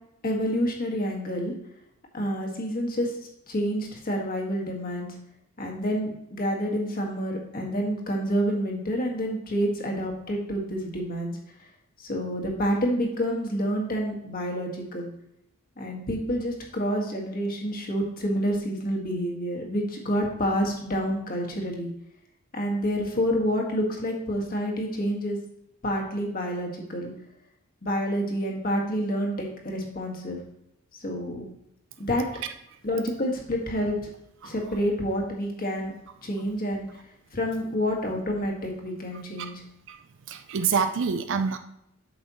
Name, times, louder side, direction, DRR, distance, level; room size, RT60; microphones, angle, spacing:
voice 1, 0.2-1.5 2.1-3.1 3.5-5.1 5.6-11.3 12.0-15.1 15.8-21.9 22.5-25.4 25.8-27.1 27.8-30.4 31.0-31.4 32.0-32.2 32.8-34.1 34.4-35.9 36.2-36.9 37.3-39.6, equal, 45° left, 0 dB, 1.8 m, -28 dB
voice 2, 40.3-41.6, right 6 dB, 60° right, 8 dB, 0.5 m, -26 dB
8.7 x 6.4 x 3.0 m, 0.78 s
head